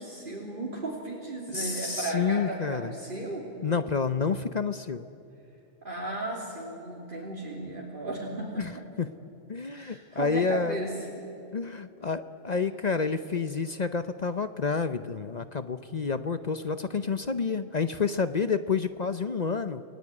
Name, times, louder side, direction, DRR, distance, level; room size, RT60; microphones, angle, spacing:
voice 1, 0.0-3.5 5.8-8.6 9.7-11.3 12.5-12.6, right 2 dB, 40° right, -3 dB, 3.3 m, -35 dB
voice 2, 1.5-2.9 3.6-5.1 8.6-8.7 9.0-9.1 9.5-10.8 11.5-19.8, left 5 dB, 40° left, 11 dB, 0.7 m, -29 dB
28.5 x 18.5 x 9.7 m, 2.7 s
omnidirectional pair, 1.3 m